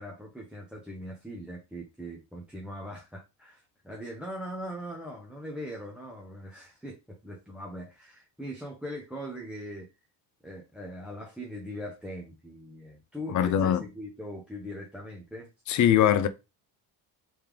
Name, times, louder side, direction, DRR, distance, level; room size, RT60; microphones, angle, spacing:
voice 1, 0.0-9.9 10.4-15.5, equal, ahead, 0.8 m, -40 dB
voice 2, 13.3-13.8 15.7-16.3, left 10 dB, 45° left, 0.6 m, -22 dB
3.5 x 3.2 x 3.4 m
cardioid pair, 105°, 41 cm